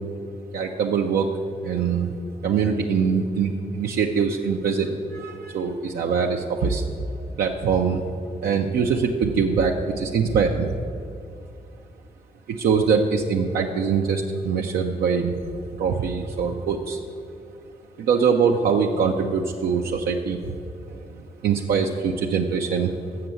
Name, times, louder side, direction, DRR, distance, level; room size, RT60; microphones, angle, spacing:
voice 1, 0.5-1.3 1.6-2.1 2.4-6.8 7.4-8.0 8.4-10.7 12.6-15.3 15.8-17.0 18.1-20.4 21.4-22.9, right 6 dB, 85° right, 1 dB, 0.5 m, -23 dB
6.9 x 6.7 x 7.5 m, 2.5 s
cardioid pair, 70°, 16 cm